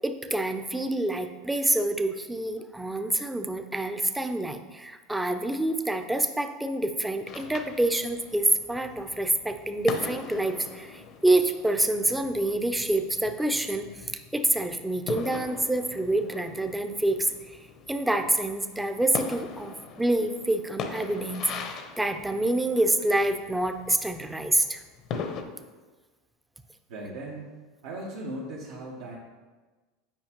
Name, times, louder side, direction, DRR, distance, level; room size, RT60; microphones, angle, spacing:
voice 1, 0.0-14.0 14.3-17.6 17.9-24.8, right 1 dB, 5° right, 7 dB, 0.5 m, -27 dB
sound 1, 7.3-25.4, left 5 dB, 50° left, 0.8 m, -41 dB
voice 2, 26.9-27.5 27.8-29.2, right 1 dB, 80° right, -5 dB, 1.2 m, -37 dB
9.0 x 4.9 x 3.0 m, 1.3 s
supercardioid pair, 105°, 0 cm